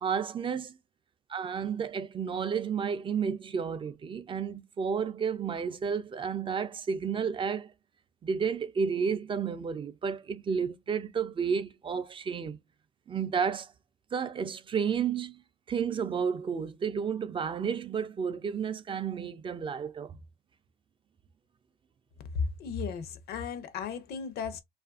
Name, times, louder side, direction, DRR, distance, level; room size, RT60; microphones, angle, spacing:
voice 1, 0.0-0.8 1.3-7.7 8.2-12.6 13.1-13.7 14.1-15.4 15.7-20.1, right 6 dB, 30° right, 0.4 m, -31 dB
voice 2, 22.3-24.6, left 5 dB, 70° left, 0.7 m, -35 dB
2.7 x 2.4 x 2.3 m
cardioid pair, 110°, 17 cm